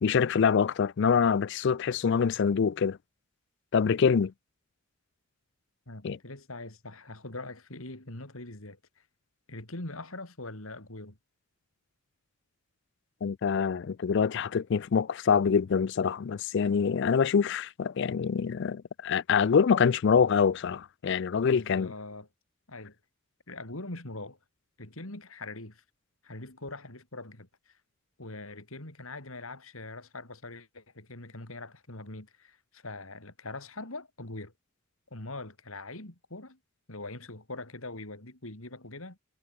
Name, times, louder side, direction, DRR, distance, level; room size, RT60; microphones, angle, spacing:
voice 1, 0.0-3.0 3.7-4.3 6.0-6.2 13.2-21.9, left 6 dB, 55° left, 0.4 m, -25 dB
voice 2, 5.9-8.8 9.5-11.2 21.4-22.3 22.7-23.0 23.5-24.4 24.8-25.8 26.2-27.8 28.2-34.5 35.1-36.6 36.9-39.2, left 2 dB, 75° left, 3.7 m, -42 dB
head